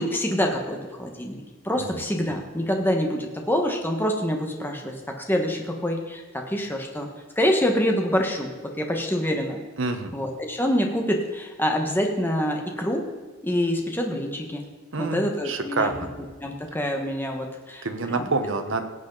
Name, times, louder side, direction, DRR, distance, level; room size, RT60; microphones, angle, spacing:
voice 1, 0.0-7.1 7.4-9.6 10.1-13.0 13.4-14.6 15.0-15.9 16.4-18.3, equal, 10° left, 2 dB, 1.4 m, -26 dB
voice 2, 9.8-10.1 14.9-16.1 17.8-18.8, right 3 dB, 75° right, 8 dB, 1.2 m, -27 dB
17.5 x 8.3 x 4.0 m, 1.4 s
head